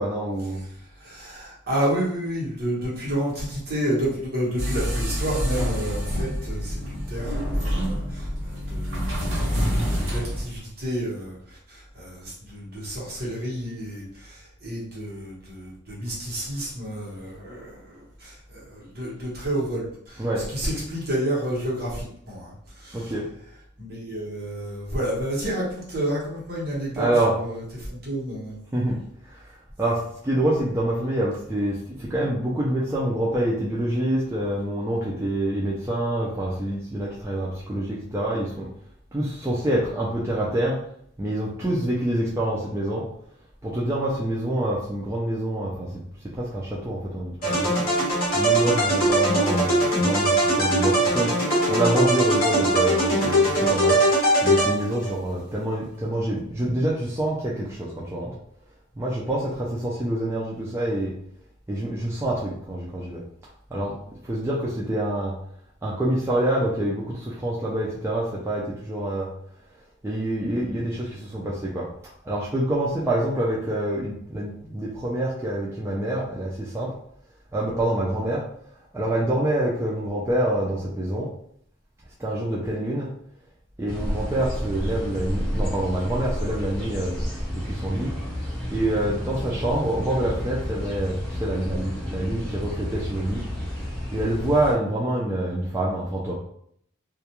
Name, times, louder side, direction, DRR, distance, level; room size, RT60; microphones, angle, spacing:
voice 1, 0.0-0.6 20.2-20.4 22.9-23.2 27.0-27.4 28.7-29.0 29.3-38.7 39.1-40.8 41.2-43.0 43.6-45.9 46.3-47.8 48.3-54.0 54.4-58.3 59.0-61.1 61.7-63.2 63.7-63.9 64.2-65.3 65.8-69.3 70.0-71.9 72.2-76.9 77.5-78.4 78.9-81.3 82.2-83.1 83.8-87.2 87.5-88.1 88.7-93.4 94.1-96.3, right 1 dB, 15° right, -6 dB, 0.3 m, -26 dB
voice 2, 0.5-23.1 23.8-28.6, right 1 dB, 50° right, -5 dB, 1.0 m, -30 dB
sound 1, 4.6-10.4, equal, 80° right, 0.9 m, -27 dB
sound 2, 47.4-55.1, right 1 dB, 45° left, 0.9 m, -21 dB
sound 3, 83.9-94.7, equal, 5° left, 0.7 m, -31 dB
2.4 x 2.2 x 2.8 m, 0.67 s
head